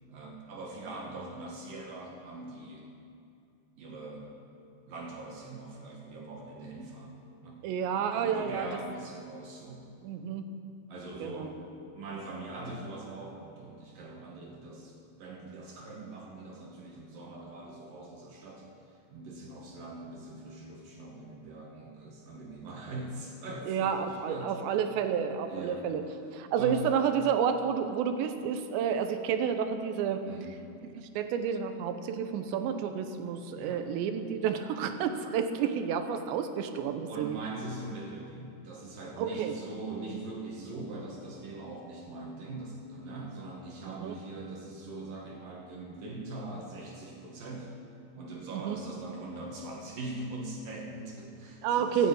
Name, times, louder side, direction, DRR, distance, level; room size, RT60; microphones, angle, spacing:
voice 1, 0.1-2.9 3.8-4.3 4.9-7.6 8.2-9.8 10.9-11.6 11.9-18.7 19.1-24.5 25.5-25.9 26.6-27.0 30.2-30.7 33.5-33.8 37.1-47.7 48.1-52.1, right 2 dB, 60° right, -1 dB, 3.0 m, -42 dB
voice 2, 7.6-8.7 10.0-10.5 11.2-11.5 23.7-26.0 26.3-30.2 30.9-37.4 39.2-39.6 43.9-44.2 48.5-48.8 51.6-52.1, right 7 dB, 85° right, 7 dB, 3.2 m, -30 dB
14.5 x 10.0 x 8.5 m, 2.5 s
omnidirectional pair, 4.9 m